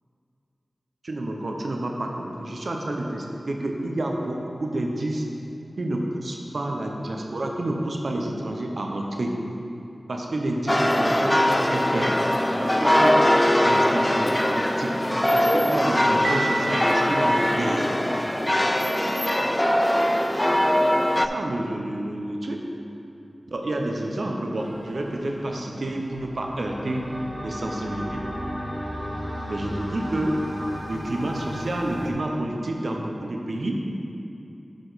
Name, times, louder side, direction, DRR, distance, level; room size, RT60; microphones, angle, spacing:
voice 1, 1.0-5.3 5.8-9.4 10.1-12.1 12.6-13.2 13.6-14.9 15.3-17.9 19.4-19.9 21.1-22.6 23.5-27.1 27.4-28.3 29.5-30.3 30.9-33.7, right 1 dB, 75° right, 1 dB, 0.8 m, -29 dB
sound 1, 10.7-21.3, left 1 dB, 15° left, 0.3 m, -21 dB
Piano, 16.2-18.2, right 4 dB, 90° right, 0.3 m, -32 dB
sound 2, 24.6-32.1, equal, 40° right, 1.6 m, -35 dB
8.0 x 4.9 x 4.1 m, 2.7 s
cardioid pair, 45°, 0 cm